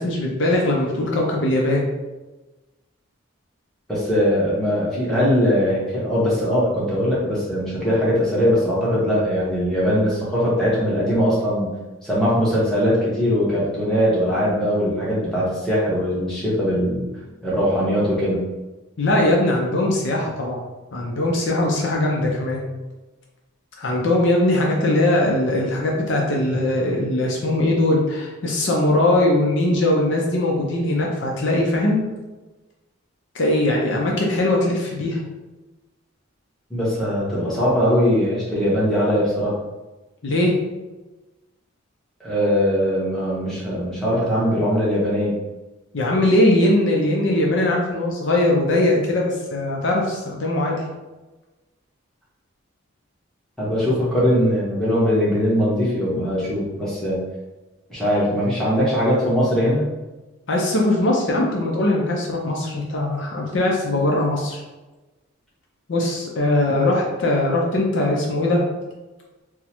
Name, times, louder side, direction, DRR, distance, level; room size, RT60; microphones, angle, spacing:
voice 1, 0.0-1.8 19.0-20.6 20.9-22.6 23.8-32.0 33.3-35.2 40.2-40.5 45.9-50.8 60.5-64.6 65.9-68.6, left 1 dB, 55° left, -1 dB, 0.5 m, -20 dB
voice 2, 3.9-11.7 12.0-17.1 17.4-18.5 36.7-39.5 42.2-45.3 53.6-57.3 57.9-59.9, equal, ahead, -8 dB, 0.8 m, -21 dB
3.5 x 2.0 x 2.9 m, 1.1 s
head